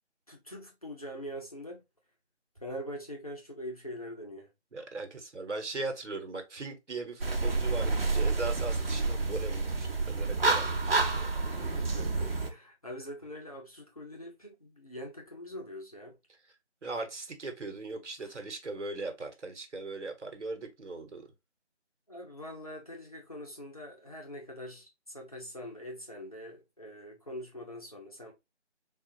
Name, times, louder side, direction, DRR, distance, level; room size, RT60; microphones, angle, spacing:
voice 1, 0.3-1.8 2.6-4.5 11.6-16.2 18.2-18.4 22.1-28.3, equal, 30° left, 0.7 m, -43 dB
voice 2, 4.7-11.3 11.6-11.9 16.8-21.3, right 3 dB, 85° right, 1.1 m, -39 dB
sound 1, 7.2-12.5, right 3 dB, 55° right, 0.7 m, -29 dB
3.7 x 2.4 x 2.6 m
figure-of-eight pair, 170°, 35 cm